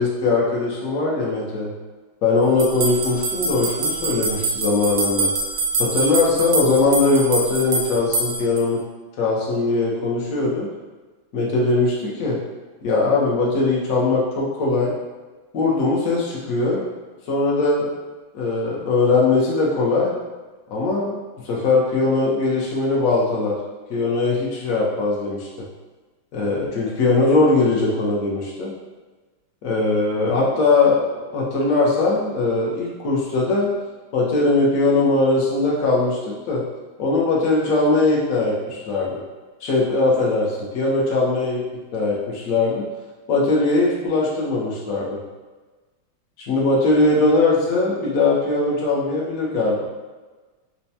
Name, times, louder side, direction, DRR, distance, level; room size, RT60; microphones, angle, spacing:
voice 1, 0.0-1.7 2.2-5.3 5.8-8.8 9.2-10.7 11.3-12.4 12.8-14.9 15.5-16.9 17.3-17.9 18.3-20.1 20.7-21.2 21.4-23.6 23.9-25.5 26.3-28.7 29.6-33.7 34.1-36.6 37.0-39.2 39.6-41.6 41.9-42.8 43.3-45.2 46.5-49.8, left 3 dB, 65° left, -4 dB, 0.8 m, -20 dB
sound 1, 2.6-8.6, right 3 dB, 80° right, 1.4 m, -25 dB
4.3 x 2.2 x 2.7 m, 1.3 s
omnidirectional pair, 2.3 m